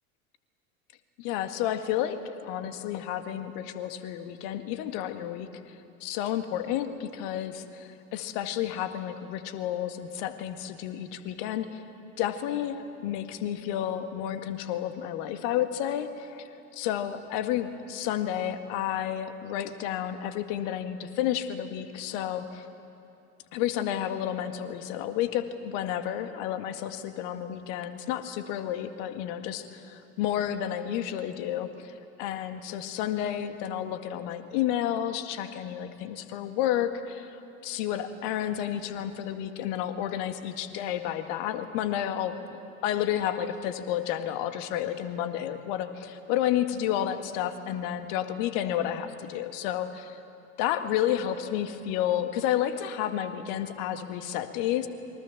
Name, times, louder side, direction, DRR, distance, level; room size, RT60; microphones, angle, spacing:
voice 1, 1.2-5.5 6.0-11.8 12.2-16.5 16.7-22.7 23.5-31.9 32.2-50.2 50.6-54.9, left 11 dB, 55° left, 8 dB, 2.0 m, -31 dB
28.0 x 23.5 x 7.3 m, 2.7 s
figure-of-eight pair, 75°, 42 cm